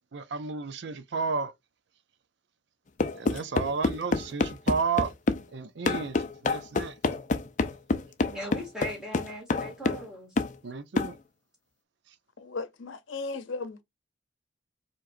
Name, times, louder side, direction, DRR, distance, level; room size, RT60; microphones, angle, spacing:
voice 1, 0.1-1.5 3.1-5.1 5.5-7.0 10.6-11.2 12.1-12.2, right 5 dB, 65° right, 0.5 m, -32 dB
sound 1, 3.0-5.4 5.8-10.1 10.4-10.5 11.0-11.1, left 3 dB, 40° left, 0.4 m, -27 dB
voice 2, 8.2-10.3, equal, 5° right, 2.1 m, -38 dB
voice 3, 12.4-13.8, left 3 dB, 90° left, 0.7 m, -36 dB
4.8 x 3.0 x 2.6 m
head